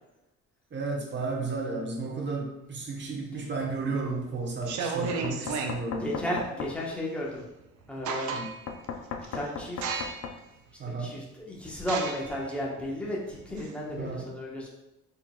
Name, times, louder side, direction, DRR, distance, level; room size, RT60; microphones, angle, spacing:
voice 1, 0.7-6.4 8.3-8.5 10.8-11.2 13.9-14.3, right 3 dB, 35° right, -1 dB, 1.1 m, -33 dB
sound 1, 3.6-4.0 4.5-5.8 7.4-7.5 7.8-8.7 9.2-9.4 9.8-10.4 10.9-11.0 11.8-14.1, right 5 dB, 75° right, 0.7 m, -34 dB
Knock, 5.0-6.8 8.7-10.4, left 6 dB, 60° left, 0.6 m, -37 dB
voice 2, 6.0-7.4 7.9-8.4 9.1-10.1 11.0-14.7, equal, 5° left, -4 dB, 1.2 m, -34 dB
4.4 x 4.1 x 2.4 m, 0.93 s
cardioid pair, 90°, 30 cm